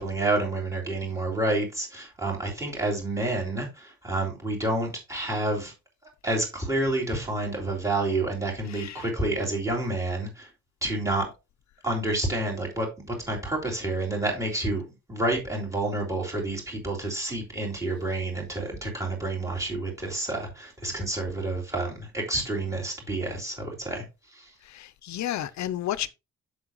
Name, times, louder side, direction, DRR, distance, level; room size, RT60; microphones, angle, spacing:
voice 1, 0.0-5.7 6.2-10.5 10.8-11.3 11.8-14.8 15.1-24.0 24.3-24.5, right 2 dB, 10° right, 3.5 m, -29 dB
voice 2, 8.7-9.1 24.6-26.1, left 12 dB, 65° left, 0.6 m, -32 dB
7.7 x 7.0 x 3.0 m
wide cardioid pair, 175°, 30 cm